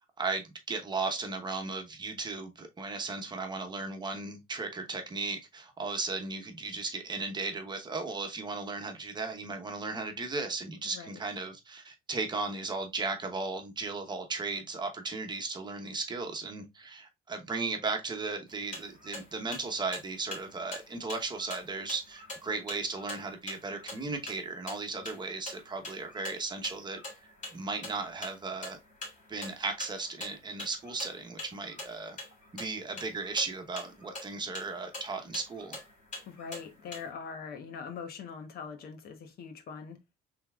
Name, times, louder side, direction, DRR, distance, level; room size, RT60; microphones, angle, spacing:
voice 1, 0.2-28.8 29.3-32.2 32.5-35.8, right 3 dB, 25° right, 1.0 m, -36 dB
voice 2, 10.8-11.2 36.3-40.0, left 6 dB, 65° left, 1.0 m, -42 dB
sound 1, 18.5-37.1, left 2 dB, 45° left, 3.0 m, -45 dB
5.4 x 3.4 x 2.3 m
cardioid pair, 110°, 17 cm